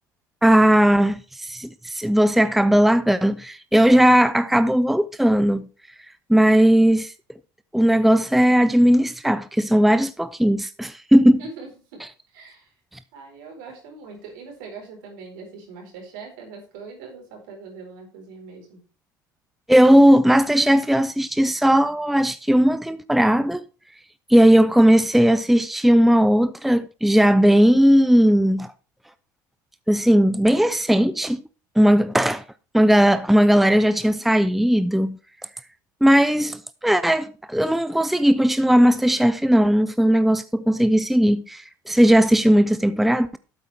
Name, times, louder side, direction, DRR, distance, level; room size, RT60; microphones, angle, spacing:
voice 1, 0.4-5.7 6.3-7.1 7.7-11.4 19.7-23.6 24.3-28.7 29.9-31.4 31.8-32.4 32.7-35.2 36.0-43.4, equal, ahead, 0.6 m, -17 dB
voice 2, 11.4-12.0 12.3-12.7 13.1-18.8, right 4 dB, 70° right, 4.5 m, -41 dB
12.0 x 8.6 x 3.5 m
hypercardioid pair, 65°, 10 cm